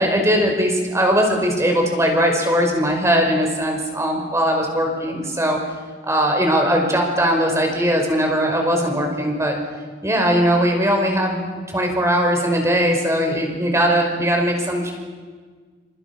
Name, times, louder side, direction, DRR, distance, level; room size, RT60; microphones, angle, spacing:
voice 1, 0.0-5.6 6.0-9.5 10.0-11.4 11.7-14.9, equal, 15° right, 2 dB, 5.6 m, -19 dB
29.5 x 26.5 x 6.2 m, 1.5 s
head